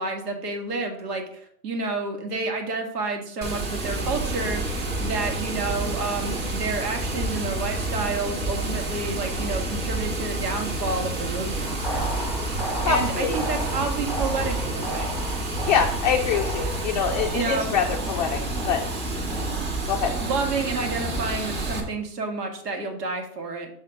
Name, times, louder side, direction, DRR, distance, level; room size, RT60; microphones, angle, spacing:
voice 1, 0.0-11.9 12.8-15.1 17.3-17.7 20.2-23.7, right 3 dB, 85° right, 4 dB, 1.7 m, -30 dB
Water, 3.4-21.8, right 2 dB, 20° right, 1.2 m, -29 dB
long delayed hit, 11.6-21.8, equal, 5° right, 0.7 m, -36 dB
voice 2, 12.8-13.4 15.7-18.4 18.7-18.8 19.9-20.1, left 7 dB, 30° left, 2 dB, 0.4 m, -24 dB
6.5 x 3.8 x 4.9 m, 0.65 s
hypercardioid pair, 140°, 47 cm